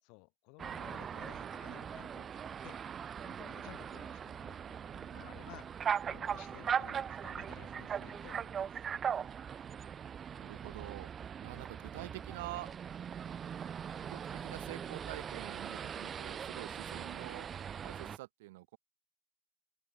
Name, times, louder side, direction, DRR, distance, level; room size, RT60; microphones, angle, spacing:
voice 1, 0.0-2.8 3.2-5.7 6.0-8.7, left 36 dB, 60° left, 5.0 m, -56 dB
sound 1, 0.6-18.2, right 8 dB, 25° right, 0.3 m, -40 dB
voice 2, 10.3-11.1 11.4-12.7 14.0-17.5 17.8-18.8, right 19 dB, 85° right, 2.0 m, -46 dB
open air
supercardioid pair, 150°, 0 cm